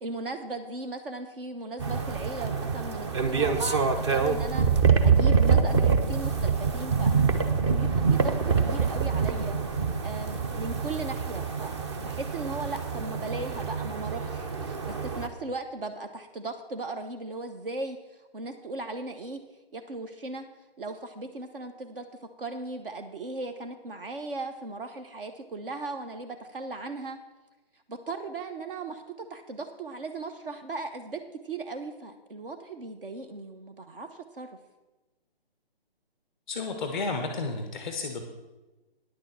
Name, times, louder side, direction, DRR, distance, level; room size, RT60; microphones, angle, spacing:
voice 1, 0.0-7.1 7.7-19.4 19.7-20.4 20.8-22.1 22.4-27.2 27.9-34.5, right 3 dB, 60° right, 6 dB, 1.1 m, -37 dB
sound 1, 1.8-15.3, right 5 dB, 30° right, 0.8 m, -25 dB
voice 2, 36.5-38.2, left 3 dB, ahead, 4 dB, 0.4 m, -32 dB
9.9 x 6.7 x 7.4 m, 1.1 s
figure-of-eight pair, 150°, 31 cm